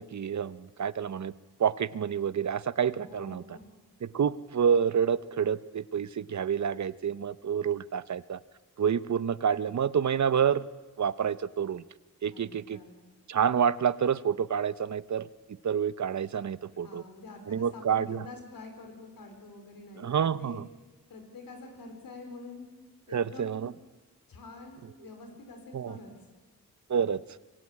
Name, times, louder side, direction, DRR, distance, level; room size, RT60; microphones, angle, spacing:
voice 1, 0.0-1.3 1.6-3.4 4.0-8.4 8.8-10.7 11.0-11.8 12.2-12.8 13.3-15.3 15.6-17.0 17.5-18.2 20.0-20.6 23.1-23.7 25.7-26.0 26.9-27.2, right 7 dB, 55° right, 16 dB, 0.9 m, -28 dB
voice 2, 3.0-3.7 12.3-13.0 16.6-20.6 21.1-22.7 23.1-23.6 24.3-26.1, left 3 dB, 90° left, 4 dB, 4.8 m, -47 dB
25.0 x 23.0 x 8.6 m, 1.2 s
cardioid pair, 65°, 33 cm